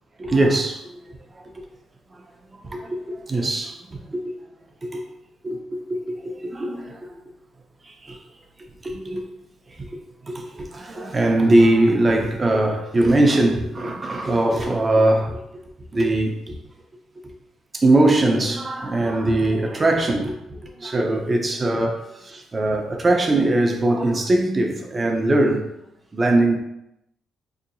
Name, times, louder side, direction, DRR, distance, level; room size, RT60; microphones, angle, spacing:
voice 1, 0.2-1.4 2.1-2.2 2.5-4.2 4.8-5.0 5.4-7.2 7.8-8.2 8.8-9.3 9.8-15.4 15.9-16.6 17.2-17.3 17.7-25.6 26.1-26.6, right 2 dB, 30° right, 3 dB, 0.6 m, -21 dB
3.8 x 2.8 x 2.6 m, 0.83 s
cardioid pair, 90°, 0 cm